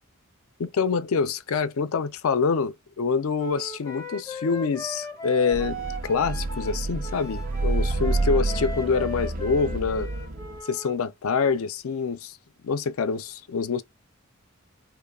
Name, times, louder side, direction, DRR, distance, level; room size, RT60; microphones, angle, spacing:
voice 1, 0.6-5.8 6.0-10.1 10.6-12.4 12.6-13.8, left 5 dB, 70° left, 0.4 m, -26 dB
Wind instrument woodwind instrument, 3.4-10.9, left 2 dB, 15° left, 0.5 m, -38 dB
sound 1, 5.5-10.6, right 2 dB, 40° right, 0.4 m, -28 dB
3.1 x 2.1 x 2.3 m
head